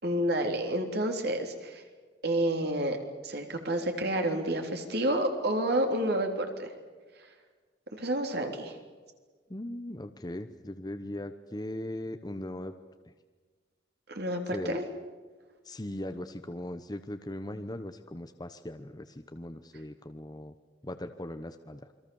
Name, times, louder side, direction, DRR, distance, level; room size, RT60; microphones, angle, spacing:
voice 1, 0.0-1.8 2.2-3.0 3.2-6.7 7.9-8.8 14.1-14.9, right 1 dB, 60° right, 4 dB, 3.6 m, -29 dB
voice 2, 9.5-12.7 13.0-13.1 14.5-14.8 15.6-20.5 20.8-21.9, left 1 dB, 20° left, 7 dB, 0.9 m, -39 dB
28.5 x 23.0 x 7.2 m, 1.4 s
head